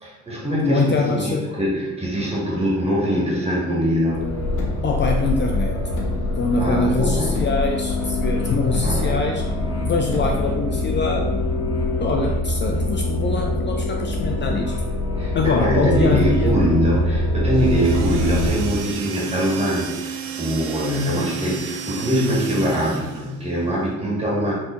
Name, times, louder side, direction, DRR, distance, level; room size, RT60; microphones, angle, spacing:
voice 1, 0.0-4.3 6.6-7.4 8.8-9.2 15.2-24.5, equal, 20° right, -5 dB, 1.5 m, -23 dB
voice 2, 0.6-1.5 4.8-5.8 6.4-9.5 9.8-11.4 12.0-14.7 15.3-16.6, left 3 dB, 40° left, 2 dB, 0.4 m, -24 dB
sound 1, 4.1-18.5, left 1 dB, 55° left, 1.1 m, -24 dB
Car, 4.2-10.5, left 1 dB, 85° left, 1.0 m, -33 dB
sound 2, 17.5-23.4, right 7 dB, 85° right, 0.5 m, -33 dB
4.6 x 2.8 x 2.4 m, 1.0 s
cardioid pair, 90°, 30 cm